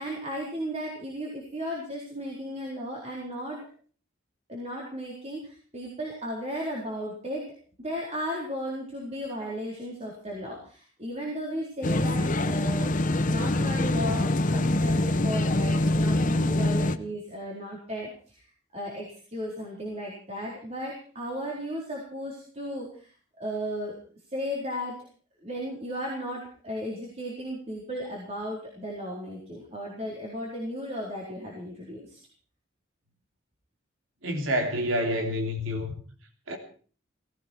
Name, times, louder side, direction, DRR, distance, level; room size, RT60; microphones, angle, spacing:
voice 1, 0.0-3.7 4.5-12.9 13.2-18.5 18.7-23.1 23.4-25.0 25.4-32.2, equal, 35° right, 4.2 m, -35 dB
sound 1, 11.8-17.0, left 1 dB, 40° left, 0.9 m, -24 dB
voice 2, 34.2-35.9 36.5-36.6, equal, 75° right, 3.2 m, -28 dB
18.0 x 17.0 x 4.6 m
head